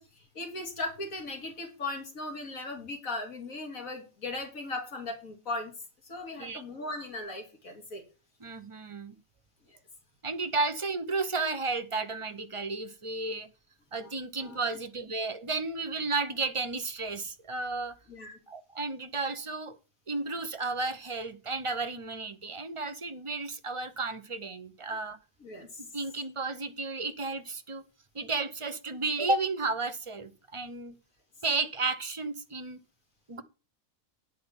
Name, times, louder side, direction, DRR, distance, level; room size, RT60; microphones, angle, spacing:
voice 1, 0.0-5.7 6.0-8.0 9.7-9.8 14.0-14.1 14.4-14.6 18.1-18.3 25.4-25.8, left 2 dB, 80° left, 3 dB, 2.7 m, -38 dB
voice 2, 8.4-9.2 10.2-13.5 13.9-17.9 18.5-19.8 20.1-25.2 25.8-27.8 28.1-30.9 31.4-32.8 33.3-33.4, right 3 dB, 30° right, 10 dB, 0.6 m, -33 dB
10.0 x 4.6 x 7.1 m, 0.32 s
omnidirectional pair, 1.4 m